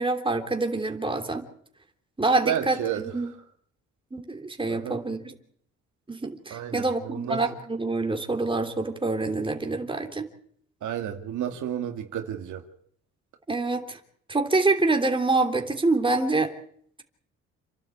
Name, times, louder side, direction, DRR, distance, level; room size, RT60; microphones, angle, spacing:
voice 1, 0.0-1.5 2.2-3.3 4.1-5.4 6.1-10.3 13.5-14.0 14.3-16.5, right 3 dB, 15° right, 4 dB, 3.2 m, -26 dB
voice 2, 2.4-3.3 4.7-5.0 6.5-7.4 10.8-12.6, right 10 dB, 75° right, 5 dB, 2.2 m, -31 dB
28.5 x 12.0 x 8.5 m, 0.65 s
cardioid pair, 90°, 30 cm